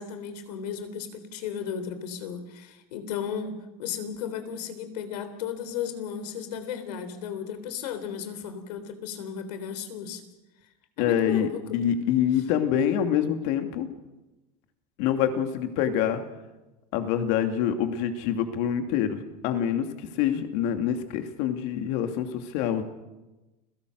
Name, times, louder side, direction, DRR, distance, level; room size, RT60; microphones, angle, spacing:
voice 1, 0.0-10.2 11.0-11.8, left 8 dB, 90° left, 10 dB, 3.6 m, -35 dB
voice 2, 11.0-13.9 15.0-16.2 16.9-22.8, left 9 dB, 65° left, 6 dB, 2.8 m, -26 dB
30.0 x 17.5 x 6.6 m, 1.1 s
supercardioid pair, 135°, 20 cm